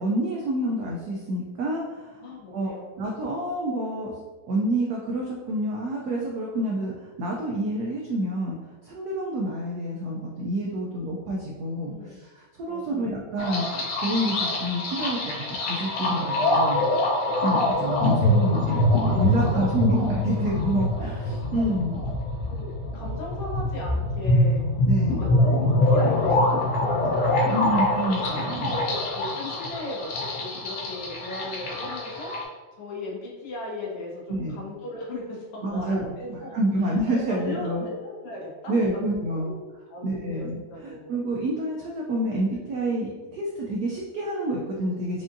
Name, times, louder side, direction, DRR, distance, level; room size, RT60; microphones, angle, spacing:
voice 1, 0.0-2.2 2.5-4.1 4.5-8.6 8.8-16.8 17.4-18.9 19.1-22.0 24.9-25.3 27.5-28.7 34.3-34.6 35.6-37.8 38.7-39.5 40.0-45.2, right 1 dB, 85° right, -2 dB, 0.8 m, -28 dB
voice 2, 2.2-3.0 11.9-12.2 12.7-13.2 18.4-20.0 21.6-21.7 22.5-24.6 25.3-27.6 28.4-32.3 32.8-36.6 37.1-39.0 39.3-41.1, left 2 dB, 90° left, -3 dB, 1.9 m, -37 dB
sound 1, 13.4-32.4, left 1 dB, 65° left, 1.2 m, -24 dB
4.8 x 2.6 x 2.5 m, 1.4 s
omnidirectional pair, 2.3 m